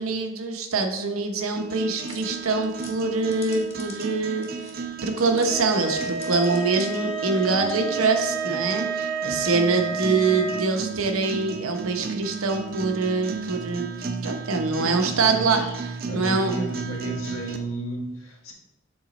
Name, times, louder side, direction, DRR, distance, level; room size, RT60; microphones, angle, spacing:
voice 1, 0.0-16.7, right 4 dB, 90° right, 5 dB, 0.9 m, -25 dB
sound 1, 1.6-17.6, right 4 dB, 45° right, 0.5 m, -34 dB
sound 2, 2.0-5.6 5.9-7.1, left 4 dB, 30° left, 0.9 m, -46 dB
sound 3, 5.5-10.7, right 4 dB, ahead, 1.1 m, -30 dB
voice 2, 7.3-7.9 8.5-8.7 14.7-15.7 16.1-18.5, right 1 dB, 90° left, 0 dB, 1.5 m, -34 dB
7.1 x 4.0 x 4.0 m, 0.94 s
head